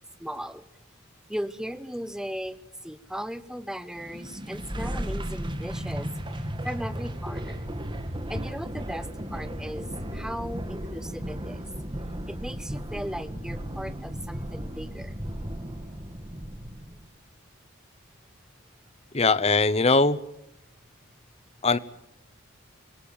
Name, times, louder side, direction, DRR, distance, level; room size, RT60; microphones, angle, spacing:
voice 1, 0.2-0.6 1.3-7.7 8.3-11.7 12.3-15.2, equal, 5° right, 0.9 m, -37 dB
sound 1, 3.9-17.0, equal, 20° right, 1.8 m, -35 dB
voice 2, 19.1-20.2 21.6-21.8, left 3 dB, 30° left, 0.8 m, -20 dB
25.5 x 18.5 x 9.0 m
head